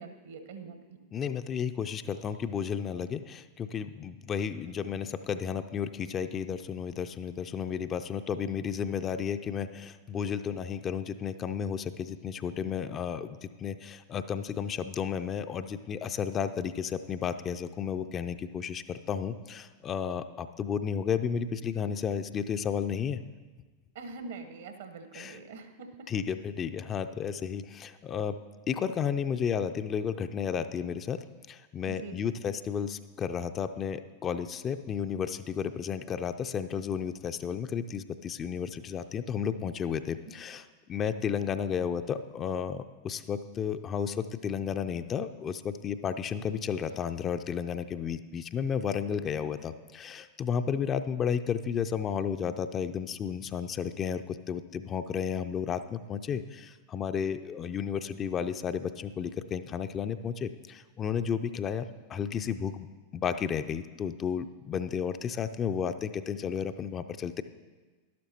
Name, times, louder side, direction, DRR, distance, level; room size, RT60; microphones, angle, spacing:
voice 1, 0.0-1.0 23.9-25.9 31.9-32.1, right 4 dB, 60° right, 7 dB, 1.1 m, -44 dB
voice 2, 1.1-23.2 25.1-25.4 26.1-28.4 28.7-31.2 31.5-62.9 63.1-67.4, left 7 dB, 25° left, 9 dB, 0.4 m, -33 dB
12.0 x 12.0 x 2.9 m, 1.3 s
figure-of-eight pair, 90°, 0 cm